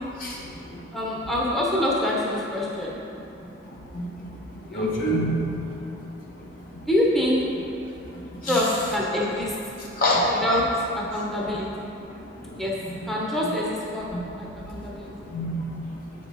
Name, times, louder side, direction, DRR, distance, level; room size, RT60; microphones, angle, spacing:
voice 1, 0.2-0.9 3.4-3.5 3.9-5.9 6.3-6.4 6.7-6.9 8.0-8.6 9.9-10.3 12.1-12.6 14.1-14.2 14.7-14.9 15.2-15.9, equal, 50° left, -4 dB, 1.1 m, -28 dB
voice 2, 0.9-2.9 4.7-4.9 6.9-7.4 8.4-9.5 10.3-10.7 10.9-11.9 12.6-12.7 13.0-15.1, left 1 dB, ahead, -5 dB, 0.9 m, -25 dB
8.0 x 5.5 x 4.1 m, 2.7 s
head